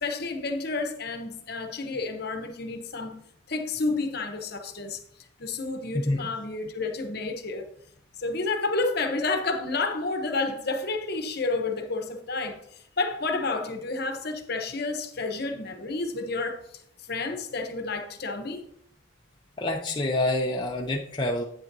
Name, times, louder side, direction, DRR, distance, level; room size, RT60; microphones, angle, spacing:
voice 1, 0.0-5.0 5.4-7.7 8.2-18.6, left 3 dB, 50° left, 0.9 m, -30 dB
voice 2, 19.6-21.4, left 1 dB, 20° left, 0.5 m, -27 dB
8.8 x 8.7 x 2.7 m
head